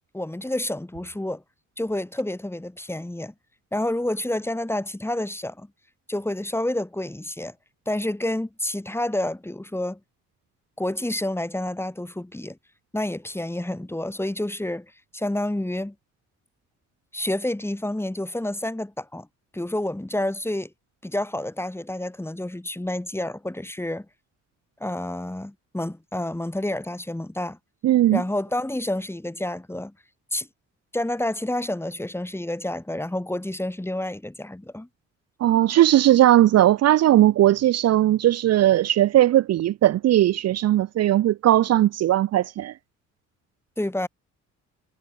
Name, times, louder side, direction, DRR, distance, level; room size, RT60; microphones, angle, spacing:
voice 1, 0.1-1.4 1.8-3.3 3.7-5.7 6.1-7.5 7.9-10.0 10.8-12.6 12.9-14.9 15.1-15.9 17.1-19.3 19.5-20.7 21.0-24.1 24.8-27.6 28.1-29.9 30.3-30.5 30.9-34.9 43.8-44.1, left 1 dB, 10° left, 6.1 m, -29 dB
voice 2, 27.8-28.2 35.4-42.7, right 13 dB, 60° right, 0.6 m, -18 dB
cardioid pair, 90°, 30 cm